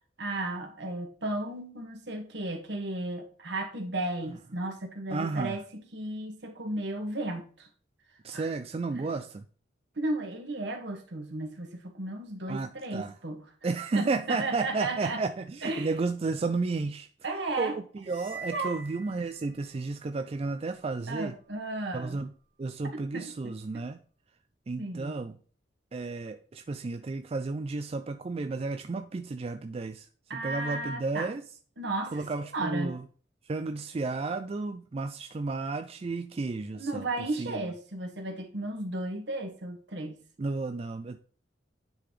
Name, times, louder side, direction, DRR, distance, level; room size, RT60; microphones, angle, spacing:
voice 1, 0.2-7.7 8.3-8.5 8.9-9.1 10.0-13.4 13.9-15.2 15.6-15.9 17.2-17.8 18.5-18.7 21.1-22.2 22.9-23.8 24.8-25.2 30.3-31.3 31.8-32.9 36.7-40.2, right 2 dB, 70° right, 1.4 m, -34 dB
voice 2, 5.1-5.6 8.2-9.5 12.5-13.1 13.6-17.1 17.6-21.3 21.9-22.3 22.6-24.0 24.7-25.3 25.9-30.1 30.3-31.4 32.1-33.0 33.5-37.1 37.4-37.7 40.4-41.2, right 3 dB, 30° right, 0.3 m, -32 dB
sound 1, 18.0-19.9, right 4 dB, 85° right, 2.7 m, -45 dB
9.8 x 3.9 x 3.2 m
head